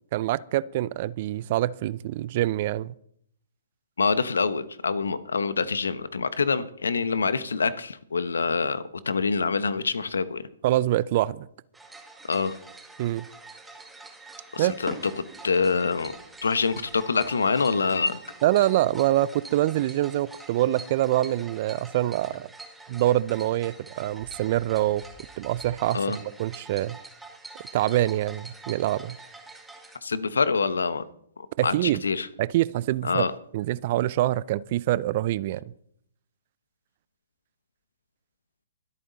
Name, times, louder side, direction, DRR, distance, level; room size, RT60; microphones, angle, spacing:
voice 1, 0.1-2.9 10.6-11.5 13.0-13.3 14.6-14.8 18.4-22.5 22.9-25.0 25.4-27.0 27.7-29.2 31.6-32.0 32.4-33.2 33.5-35.6, right 14 dB, 45° right, 0.5 m, -25 dB
voice 2, 4.0-10.4 12.3-12.6 14.5-15.1 15.4-16.2 16.4-18.2 25.9-26.2 30.0-31.1 31.4-32.3 33.0-33.3, left 4 dB, 80° left, 1.1 m, -25 dB
sound 1, 11.7-30.0, right 3 dB, 5° right, 1.8 m, -45 dB
24.0 x 8.6 x 4.0 m
hypercardioid pair, 130°, 0 cm